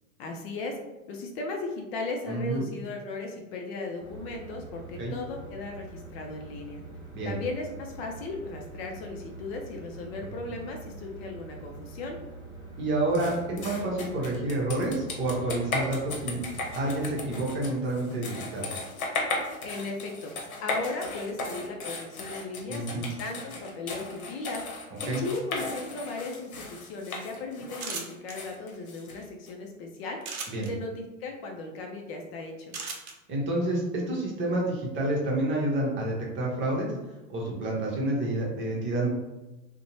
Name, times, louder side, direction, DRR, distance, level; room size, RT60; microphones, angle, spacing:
voice 1, 0.2-0.8 1.1-6.8 7.2-12.2 19.6-20.3 20.6-30.2 30.5-32.7, left 3 dB, 45° left, 2 dB, 0.5 m, -36 dB
voice 2, 2.3-2.7 5.0-5.2 7.1-7.3 12.8-16.4 16.7-18.7 22.7-23.0 25.1-25.2 30.5-30.7 33.3-36.9 37.3-39.1, right 1 dB, 25° right, -2 dB, 0.8 m, -29 dB
sound 1, 4.0-17.6, right 3 dB, 10° right, 0.4 m, -45 dB
sound 2, 13.1-29.5, left 3 dB, 75° left, 0.8 m, -36 dB
sound 3, 27.8-28.3 30.2-30.7 32.7-33.1, right 4 dB, 85° right, 0.7 m, -35 dB
2.6 x 2.1 x 2.9 m, 1.1 s
hypercardioid pair, 105°, 42 cm